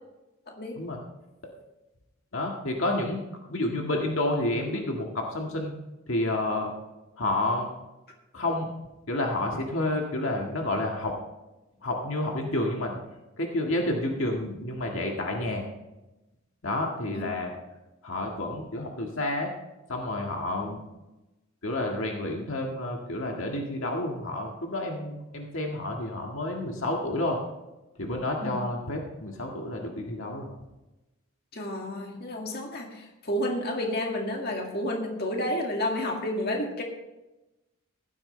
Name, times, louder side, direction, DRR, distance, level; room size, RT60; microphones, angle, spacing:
voice 1, 0.5-0.8 17.1-17.2 28.4-28.6 31.5-36.8, left 1 dB, 45° left, 1 dB, 2.0 m, -30 dB
voice 2, 2.3-5.7 6.1-6.7 7.2-7.7 8.3-8.7 9.1-11.1 11.8-13.0 13.4-15.6 16.6-17.5 18.0-19.5 19.9-20.8 21.6-27.4 28.0-30.5, left 1 dB, 70° left, 0 dB, 1.8 m, -30 dB
16.0 x 12.0 x 3.3 m, 1.0 s
head